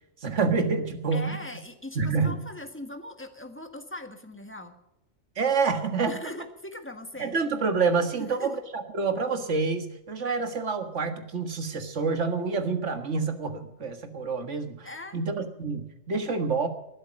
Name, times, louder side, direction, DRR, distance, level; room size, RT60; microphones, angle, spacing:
voice 1, 0.2-1.4 2.0-2.4 5.4-6.2 7.2-14.9 15.1-16.7, right 4 dB, 75° right, 7 dB, 2.0 m, -27 dB
voice 2, 1.1-4.8 6.1-7.4 8.2-8.6 14.8-15.2, left 1 dB, 10° left, 6 dB, 1.6 m, -40 dB
19.5 x 11.5 x 5.3 m, 0.90 s
omnidirectional pair, 1.2 m